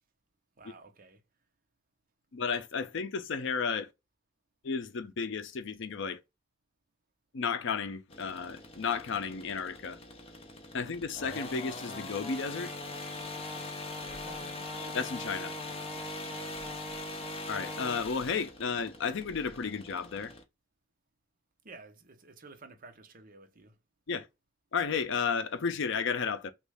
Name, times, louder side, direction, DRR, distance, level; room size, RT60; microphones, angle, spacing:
voice 1, 0.6-1.2 14.0-14.7 16.4-16.8 21.6-23.8, right 3 dB, 45° right, 0.7 m, -52 dB
voice 2, 2.3-3.9 4.6-6.2 7.3-10.0 10.7-12.7 14.8-15.5 17.5-20.3 24.1-24.3 24.7-26.5, left 5 dB, 65° left, 0.5 m, -33 dB
sound 1, 8.1-20.4, left 2 dB, 30° left, 0.7 m, -41 dB
3.1 x 2.4 x 3.3 m
head